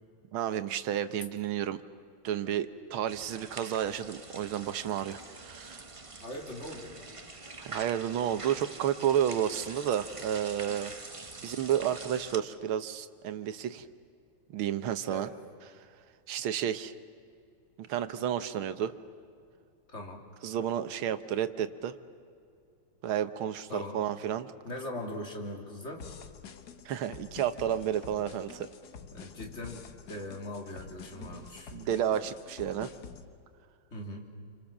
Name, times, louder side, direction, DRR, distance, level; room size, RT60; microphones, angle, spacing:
voice 1, 0.3-1.8 2.2-5.8 7.6-10.9 11.4-13.9 14.5-15.3 16.3-16.9 17.8-18.9 20.4-22.0 23.0-24.5 26.9-28.7 31.1-32.9, right 10 dB, 75° right, 11 dB, 1.8 m, -31 dB
sound 1, 3.1-12.4, right 3 dB, 25° right, 0.8 m, -45 dB
voice 2, 6.2-7.0 15.1-15.3 19.9-20.2 23.7-24.0 24.6-26.1 29.1-31.7 33.9-34.3, left 1 dB, 30° left, 2 dB, 3.1 m, -40 dB
sound 2, 26.0-33.3, left 6 dB, 55° left, 1.5 m, -48 dB
28.0 x 26.0 x 7.3 m, 2.4 s
omnidirectional pair, 2.3 m